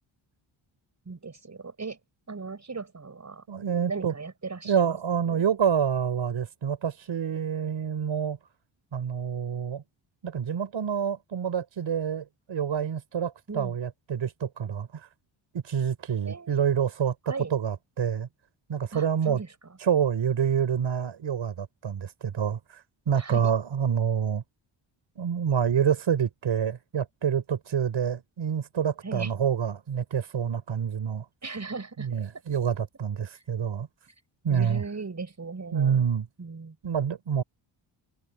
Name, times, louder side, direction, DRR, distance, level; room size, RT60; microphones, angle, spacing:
voice 1, 1.0-2.0 2.3-3.4 3.9-5.0 5.3-5.4 13.5-13.7 16.2-16.6 17.3-17.5 18.9-19.5 23.2-23.5 29.0-29.3 31.4-32.1 33.3-33.4 34.5-36.0 36.4-36.7, right 4 dB, 35° right, 6.8 m, -37 dB
voice 2, 3.5-4.1 4.6-8.4 8.9-9.8 10.2-15.1 15.5-18.3 18.7-19.4 19.8-24.4 25.2-31.3 32.0-33.9 34.4-34.8 35.7-36.3 36.8-37.4, right 8 dB, 65° right, 4.6 m, -27 dB
cardioid pair, 70°, 50 cm